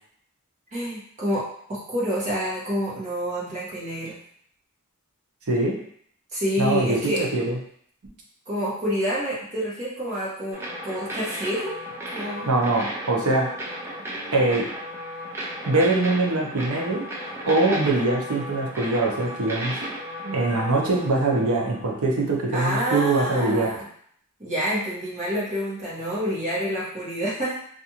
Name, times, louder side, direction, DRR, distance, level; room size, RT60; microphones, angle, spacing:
voice 1, 0.7-4.2 6.3-7.3 8.5-11.7 12.1-12.5 22.5-23.8 24.4-27.6, equal, 35° right, -8 dB, 1.1 m, -28 dB
voice 2, 6.6-7.6 12.5-13.5 14.3-14.7 15.7-17.0 17.5-19.9 20.2-23.7, right 2 dB, 70° right, -1 dB, 0.7 m, -23 dB
sound 1, 10.5-22.3, equal, 10° right, 0.4 m, -35 dB
2.5 x 2.4 x 2.8 m, 0.65 s
head